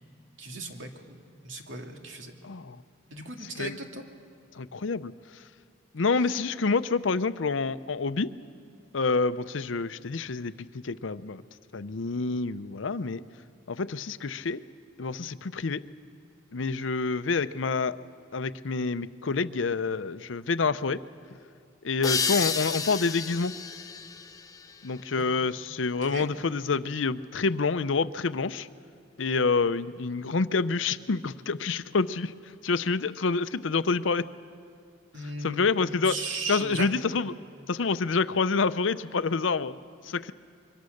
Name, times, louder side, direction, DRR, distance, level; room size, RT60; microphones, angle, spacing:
voice 1, 0.4-2.3 3.1-4.0 25.1-25.2 26.0-26.3 35.1-35.7 36.1-36.9, right 3 dB, 90° right, 3 dB, 2.3 m, -37 dB
voice 2, 2.4-2.8 3.4-3.8 4.5-5.1 5.9-8.3 8.9-11.4 11.7-13.2 13.7-14.6 15.0-15.8 16.5-18.0 18.3-21.0 21.8-23.5 24.8-28.7 29.2-32.3 32.6-34.2 35.4-36.2 36.5-37.4 37.7-39.7 40.0-40.3, left 4 dB, 90° left, 14 dB, 0.7 m, -27 dB
sound 1, 22.0-25.4, left 5 dB, 20° left, 0.9 m, -32 dB
25.5 x 23.5 x 6.6 m, 2.3 s
head